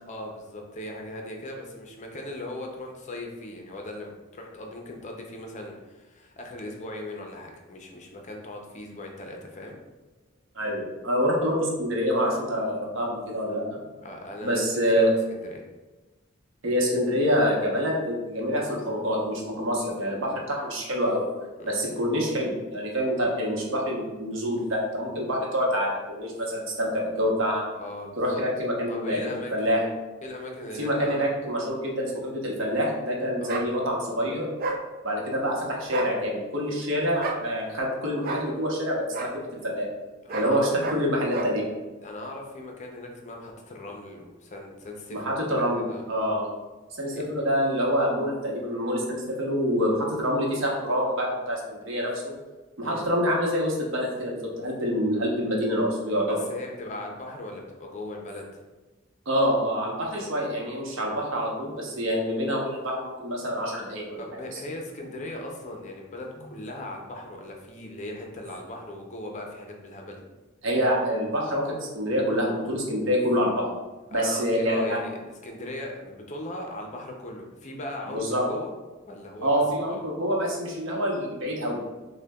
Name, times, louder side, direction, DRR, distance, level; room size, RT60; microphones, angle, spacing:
voice 1, 0.1-9.8 14.0-15.6 21.6-21.8 27.7-28.4 28.9-29.9 30.2-31.2 33.4-33.6 36.9-37.1 40.2-40.8 42.0-46.0 47.1-47.3 52.8-53.0 56.3-58.6 64.2-70.2 74.1-78.7 79.1-79.6 79.9-80.0, left 1 dB, 35° left, 1 dB, 0.5 m, -39 dB
voice 2, 10.5-13.8 14.4-15.1 16.6-21.3 21.7-27.6 28.2-29.8 30.7-34.5 35.0-39.9 40.3-41.7 45.1-46.5 47.0-52.3 52.8-56.4 59.3-64.6 70.6-73.7 74.1-75.0 78.1-78.4 79.4-81.9, equal, 70° right, -2 dB, 0.8 m, -26 dB
sound 1, 33.5-33.7 34.6-34.8 35.8-36.1 37.2-37.4 38.2-38.5 39.1-39.3 40.3-40.5 40.8-41.0 41.3-41.5, right 3 dB, 50° right, 0.4 m, -30 dB
6.1 x 2.2 x 2.2 m, 1.2 s
head